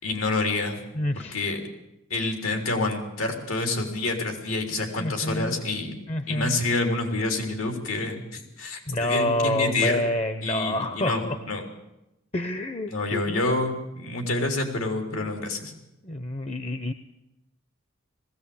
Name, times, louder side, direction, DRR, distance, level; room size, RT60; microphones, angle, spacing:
voice 1, 0.0-0.8 1.2-1.6 2.1-6.0 6.3-10.0 10.4-11.6 12.9-15.7, left 2 dB, 90° left, 4 dB, 3.6 m, -28 dB
voice 2, 0.9-1.4 4.9-5.6 6.1-6.6 8.9-11.4 12.3-13.4 16.0-16.9, left 1 dB, 30° left, 10 dB, 0.7 m, -28 dB
20.0 x 16.0 x 8.6 m, 0.91 s
head